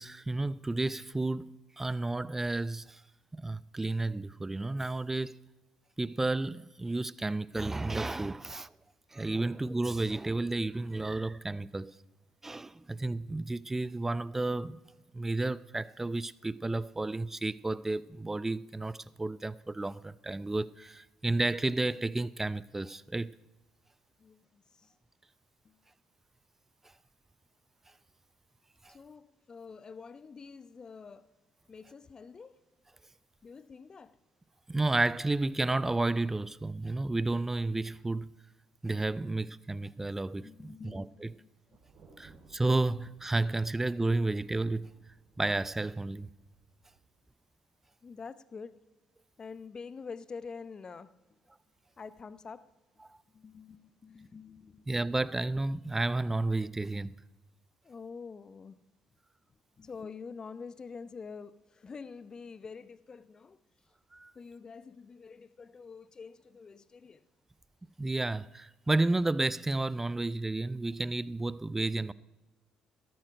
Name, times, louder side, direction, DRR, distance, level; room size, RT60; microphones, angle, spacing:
voice 1, 0.0-3.0 3.3-5.4 6.0-8.7 9.1-11.9 12.4-14.8 15.1-23.3 28.8-29.0 34.7-38.3 38.8-41.3 42.2-44.9 45.4-46.3 54.9-57.1 64.1-64.3 68.0-72.1, right 2 dB, 15° right, 0.5 m, -32 dB
voice 2, 24.2-24.9 25.6-25.8 28.9-31.3 31.7-32.6 33.4-34.2 40.4-41.8 42.1-42.2 48.0-48.8 49.4-51.1 52.0-52.6 53.3-54.9 57.8-58.8 59.8-63.6 64.3-67.2, left 5 dB, 35° left, 0.8 m, -47 dB
Thunder, 41.7-47.1, right 4 dB, 55° right, 3.2 m, -60 dB
13.0 x 12.5 x 4.9 m
hypercardioid pair, 55°, 2 cm